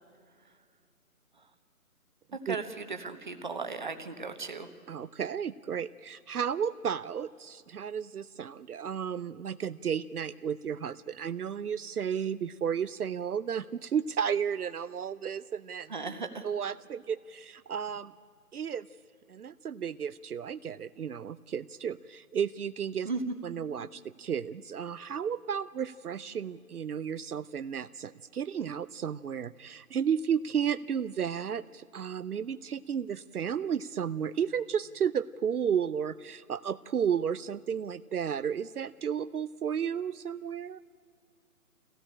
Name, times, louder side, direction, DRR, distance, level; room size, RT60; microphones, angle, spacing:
voice 1, 2.3-4.7 15.9-16.5 23.0-23.3, right 4 dB, 30° right, 8 dB, 1.2 m, -36 dB
voice 2, 4.9-15.9 16.4-18.1 18.5-18.9 19.3-23.1 23.4-40.8, right 8 dB, 75° right, 15 dB, 0.7 m, -33 dB
24.0 x 17.0 x 8.8 m, 2.2 s
hypercardioid pair, 175°, 45 cm